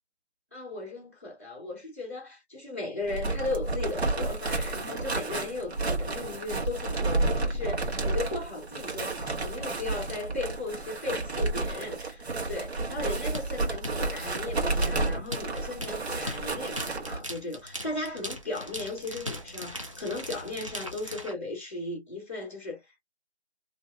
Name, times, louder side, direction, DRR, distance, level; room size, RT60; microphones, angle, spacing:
voice 1, 0.5-23.0, left 2 dB, 15° left, 0.7 m, -36 dB
sound 1, 3.0-17.2, right 2 dB, 70° right, 1.1 m, -31 dB
sound 2, 13.3-21.3, equal, 30° right, 0.5 m, -39 dB
2.6 x 2.1 x 2.2 m
figure-of-eight pair, 165°, 33 cm